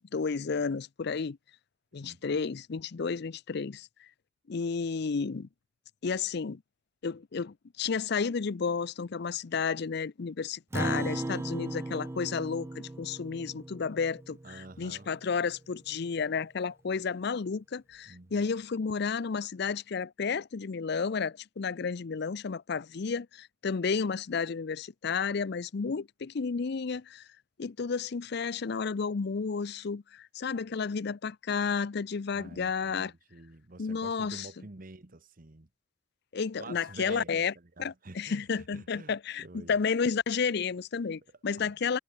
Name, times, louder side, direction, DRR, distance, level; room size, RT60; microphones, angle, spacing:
voice 1, 0.1-1.4 1.9-3.9 4.5-5.5 6.0-6.6 7.0-27.3 27.6-33.1 33.8-34.5 36.3-37.5 37.8-42.0, left 5 dB, 55° left, 0.5 m, -32 dB
voice 2, 2.0-2.4 14.4-15.1 18.0-18.4 32.3-35.7 36.6-39.8 41.6-41.8, right 2 dB, 45° right, 1.2 m, -48 dB
Acoustic guitar, 10.7-15.4, right 2 dB, 15° right, 0.3 m, -37 dB
head